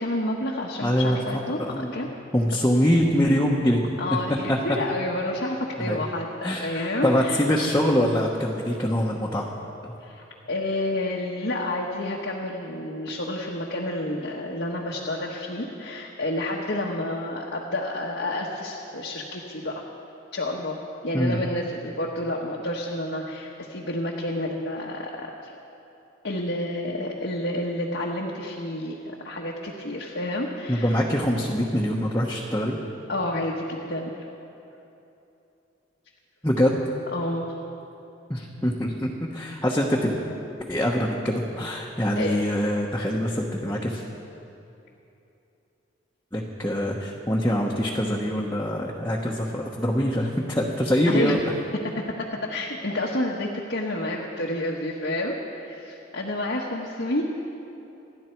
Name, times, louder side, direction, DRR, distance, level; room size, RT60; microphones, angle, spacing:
voice 1, 0.0-2.1 2.5-2.6 4.0-7.4 10.0-19.8 20.3-25.5 26.2-31.0 33.1-34.3 37.1-37.5 42.2-42.6 51.1-51.4 52.0-52.1 52.4-57.2, left 1 dB, 70° left, -3 dB, 1.3 m, -30 dB
voice 2, 0.8-2.0 2.3-3.8 4.5-4.6 5.8-6.0 6.4-9.5 9.8-9.9 21.1-21.4 30.7-32.8 36.4-36.8 38.3-40.2 40.7-44.0 46.3-51.4, equal, 15° left, -4 dB, 1.1 m, -24 dB
27.5 x 11.0 x 4.6 m, 2.9 s
head